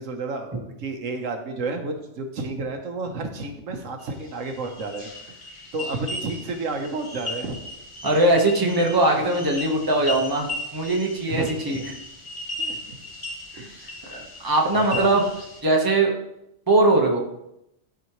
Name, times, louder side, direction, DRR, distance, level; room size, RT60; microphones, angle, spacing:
voice 1, 0.0-5.4 5.7-7.6 11.3-11.9 12.6-12.9 13.5-13.8 14.7-15.1, right 3 dB, 85° right, 4 dB, 1.3 m, -31 dB
sound 1, 4.0-15.6, left 2 dB, 25° left, 1.0 m, -37 dB
voice 2, 8.0-11.8 13.6-13.7 14.1-15.3 15.6-16.1 16.7-17.2, right 2 dB, 20° right, 0 dB, 1.1 m, -21 dB
12.0 x 4.8 x 3.1 m, 0.83 s
omnidirectional pair, 1.3 m